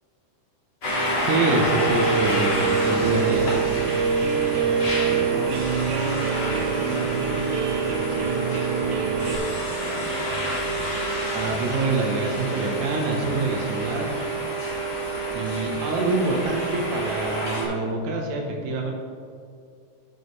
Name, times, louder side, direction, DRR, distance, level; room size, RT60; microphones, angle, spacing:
sound 1, 0.8-17.7, right 2 dB, 45° left, 1.6 m, -28 dB
voice 1, 1.2-3.5 11.3-14.1 15.3-18.9, right 2 dB, 70° right, 0 dB, 2.0 m, -26 dB
Guitar, 1.5-9.4, right 6 dB, 90° right, 2.3 m, -25 dB
voice 2, 4.9-6.3 6.7-8.9 9.8-10.8, left 3 dB, 75° left, 5 dB, 2.1 m, -40 dB
13.0 x 4.8 x 3.1 m, 2.3 s
omnidirectional pair, 3.9 m